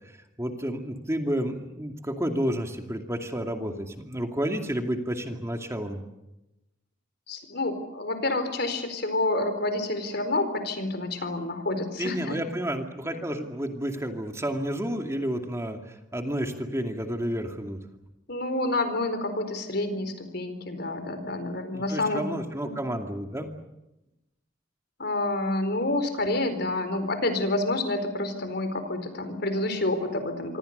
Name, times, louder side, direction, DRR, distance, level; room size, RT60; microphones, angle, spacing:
voice 1, 0.4-6.0 12.0-15.8 16.1-17.8 21.7-23.5, equal, 15° right, 4 dB, 2.5 m, -30 dB
voice 2, 7.3-12.4 18.3-22.3 22.6-22.7 25.0-30.6, left 2 dB, 60° left, 9 dB, 4.5 m, -28 dB
26.0 x 26.0 x 6.8 m, 0.95 s
head